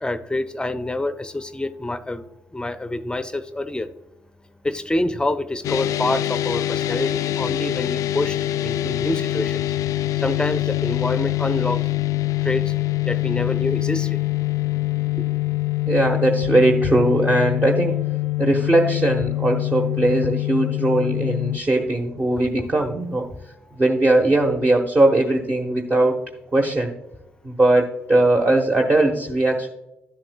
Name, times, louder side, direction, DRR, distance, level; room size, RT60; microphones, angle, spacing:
voice 1, 0.0-2.2 2.5-3.9 4.6-8.4 8.6-9.6 10.2-11.8 12.4-12.7 13.1-14.2, left 1 dB, 15° left, 11 dB, 0.6 m, -26 dB
sound 1, 5.6-21.6, left 16 dB, 65° left, 0.3 m, -24 dB
voice 2, 15.8-17.9 18.4-23.3 23.8-26.2 26.5-26.9 27.4-29.7, right 2 dB, 30° right, 2 dB, 1.1 m, -19 dB
10.5 x 7.6 x 2.3 m, 0.91 s
hypercardioid pair, 50°, 6 cm